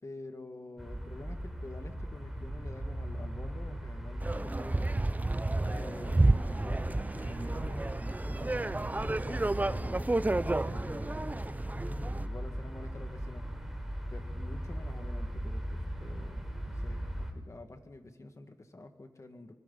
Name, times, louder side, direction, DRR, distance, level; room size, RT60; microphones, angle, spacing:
voice 1, 0.0-4.9 5.6-10.0 10.3-11.3 12.2-13.4 14.1-19.5, left 2 dB, 45° left, 6 dB, 2.1 m, -48 dB
sound 1, 0.8-17.3, right 1 dB, 5° right, 4.3 m, -38 dB
sound 2, 4.2-12.3, right 2 dB, 20° right, 0.6 m, -31 dB
25.5 x 25.0 x 4.2 m, 1.3 s
cardioid pair, 60°, 7 cm